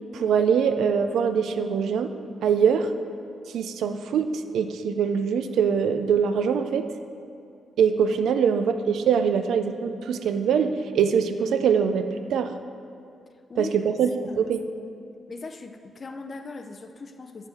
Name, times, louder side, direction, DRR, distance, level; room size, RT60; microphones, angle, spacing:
voice 1, 0.1-2.1 2.4-2.9 3.5-6.9 7.8-12.5 13.6-14.6, right 7 dB, 85° right, 8 dB, 0.4 m, -23 dB
voice 2, 15.3-17.5, left 3 dB, 35° left, 7 dB, 0.5 m, -39 dB
8.7 x 6.7 x 4.3 m, 2.4 s
wide cardioid pair, 155°, 0 cm